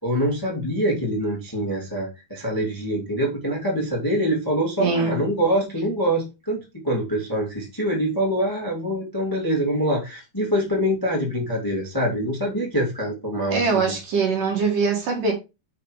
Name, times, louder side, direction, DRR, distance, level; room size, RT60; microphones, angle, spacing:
voice 1, 0.0-14.0, equal, 10° left, 1.2 m, -25 dB
voice 2, 4.8-5.2 13.5-15.3, right 4 dB, 55° right, 2.9 m, -22 dB
6.0 x 5.9 x 4.8 m
omnidirectional pair, 5.1 m